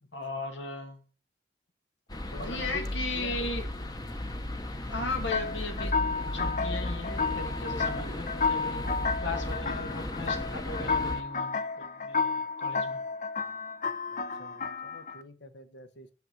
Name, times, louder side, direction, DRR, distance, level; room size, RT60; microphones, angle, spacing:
voice 1, 0.1-1.0 2.4-3.7 4.9-8.8 9.2-13.0, left 3 dB, 85° left, 5 dB, 2.4 m, -37 dB
sound 1, 2.1-11.2, left 1 dB, 20° left, 0.9 m, -35 dB
voice 2, 2.3-3.5 14.4-16.1, left 2 dB, 70° left, 10 dB, 1.2 m, -45 dB
sound 2, 5.3-15.2, left 4 dB, 45° left, 0.7 m, -32 dB
8.8 x 7.9 x 7.7 m, 0.38 s
head